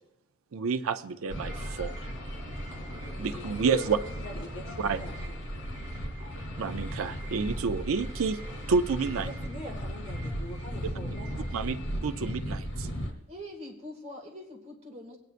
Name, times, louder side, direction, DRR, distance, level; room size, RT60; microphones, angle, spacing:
voice 1, 0.5-1.9 3.2-4.0 4.8-5.0 6.4-8.4 8.7-9.3 11.5-12.9, right 5 dB, 75° right, 9 dB, 0.5 m, -29 dB
sound 1, 1.3-13.1, equal, 60° left, 2.6 m, -36 dB
voice 2, 4.2-5.4 9.3-11.8, equal, 25° left, -5 dB, 4.7 m, -44 dB
voice 3, 13.3-15.2, left 1 dB, 30° right, -1 dB, 2.0 m, -43 dB
22.0 x 9.4 x 2.5 m, 0.84 s
head